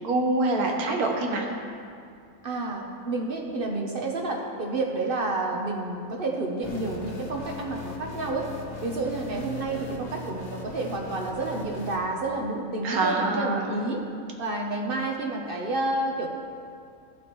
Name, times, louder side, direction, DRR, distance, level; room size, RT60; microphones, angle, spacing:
voice 1, 0.0-1.4 12.8-13.7, right 2 dB, 90° right, 1 dB, 1.6 m, -25 dB
voice 2, 2.4-8.5 8.8-14.0 14.4-16.3, right 2 dB, 45° right, 0 dB, 1.0 m, -30 dB
sound 1, 6.6-12.0, left 2 dB, 45° left, 1.2 m, -39 dB
14.5 x 7.4 x 3.1 m, 2.4 s
omnidirectional pair, 1.5 m